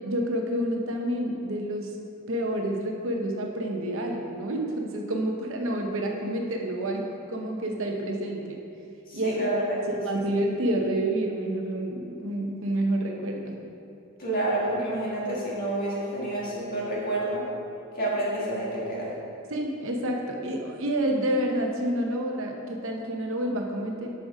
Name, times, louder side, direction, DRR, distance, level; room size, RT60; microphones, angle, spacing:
voice 1, 0.0-1.9 2.3-8.6 9.1-13.6 19.5-24.1, right 1 dB, 60° right, 1 dB, 0.9 m, -29 dB
voice 2, 9.1-9.8 10.1-10.2 14.2-17.4 17.9-19.1, right 1 dB, 40° left, -6 dB, 1.9 m, -29 dB
6.5 x 6.4 x 5.0 m, 2.6 s
head